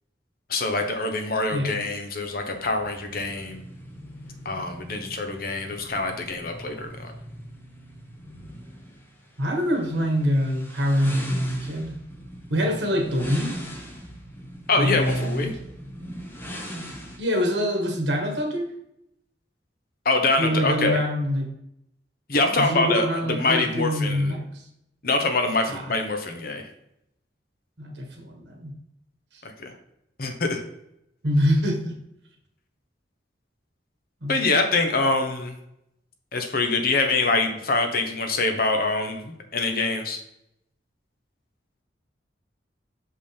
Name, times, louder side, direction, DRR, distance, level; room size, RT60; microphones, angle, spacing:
voice 1, 0.5-3.6 4.4-7.1 14.7-15.5 20.0-21.0 22.3-24.3 25.0-26.7 29.4-29.7 30.2-30.6 34.3-35.6 36.3-40.2, left 3 dB, 55° left, 5 dB, 1.1 m, -25 dB
sound 1, 1.9-17.2, equal, 15° left, 1.2 m, -41 dB
voice 2, 9.4-11.9 12.5-13.6 14.8-15.5 17.2-18.7 20.4-21.5 22.6-24.6 25.7-25.9 27.8-28.7 31.2-32.0 34.2-34.4, equal, 70° right, 2 dB, 1.6 m, -25 dB
6.1 x 5.5 x 3.5 m, 0.80 s
head